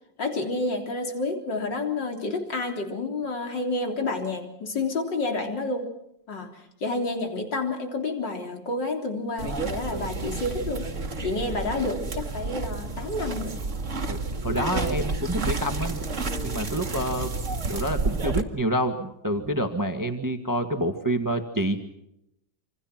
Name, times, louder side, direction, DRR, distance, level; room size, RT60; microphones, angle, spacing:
voice 1, 0.2-5.9 6.3-10.9 11.2-13.6, left 2 dB, 80° left, 3 dB, 4.2 m, -29 dB
sound 1, 9.4-18.4, right 3 dB, 45° right, 2.3 m, -30 dB
voice 2, 14.1-16.0 16.4-17.3 17.7-21.8, right 1 dB, 10° right, 6 dB, 1.7 m, -28 dB
27.5 x 27.0 x 6.0 m, 0.82 s
omnidirectional pair, 1.9 m